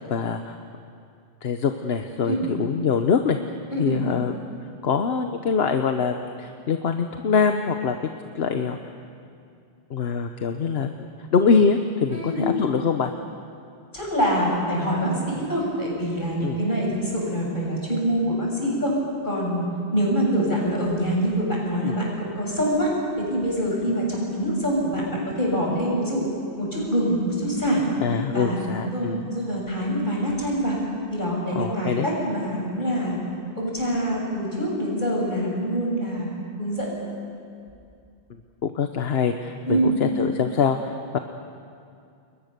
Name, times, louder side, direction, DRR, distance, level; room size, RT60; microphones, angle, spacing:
voice 1, 0.1-0.6 1.4-3.4 3.8-4.3 4.8-8.0 8.3-8.8 9.9-13.1 16.4-16.6 21.8-22.0 28.0-29.2 31.5-32.1 38.6-41.2, left 5 dB, 75° left, 6 dB, 1.2 m, -24 dB
voice 2, 3.7-4.0 12.1-12.5 13.9-18.9 19.2-19.6 19.9-22.9 23.3-26.2 26.6-27.8 28.3-30.8 31.1-33.2 33.6-36.3 36.6-37.0 39.7-40.0, equal, 50° left, -3 dB, 6.8 m, -25 dB
29.5 x 22.0 x 6.8 m, 2.4 s
omnidirectional pair, 1.0 m